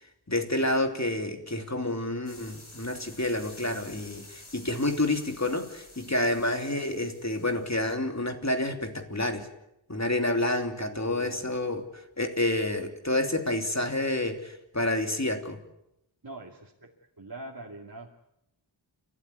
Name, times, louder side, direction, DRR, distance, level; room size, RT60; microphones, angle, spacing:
voice 1, 0.3-9.5 9.9-15.6, left 1 dB, 35° left, 5 dB, 3.0 m, -29 dB
sound 1, 2.3-7.8, left 2 dB, 70° left, 5.6 m, -50 dB
voice 2, 10.8-11.4 16.2-16.9 17.2-18.1, right 2 dB, 45° right, -1 dB, 2.5 m, -43 dB
30.0 x 13.0 x 9.6 m, 0.84 s
wide cardioid pair, 55°, 49 cm